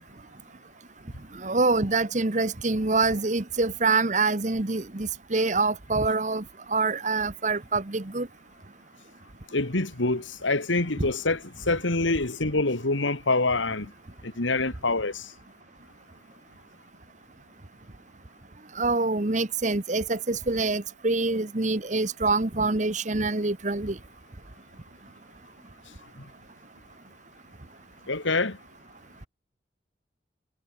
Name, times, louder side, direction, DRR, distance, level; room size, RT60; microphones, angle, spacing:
voice 1, 1.4-6.4 6.7-8.3 18.8-23.9, right 3 dB, 40° right, 1.2 m, -25 dB
voice 2, 9.5-13.9 14.2-15.3 28.1-28.6, left 3 dB, 85° left, 2.4 m, -26 dB
head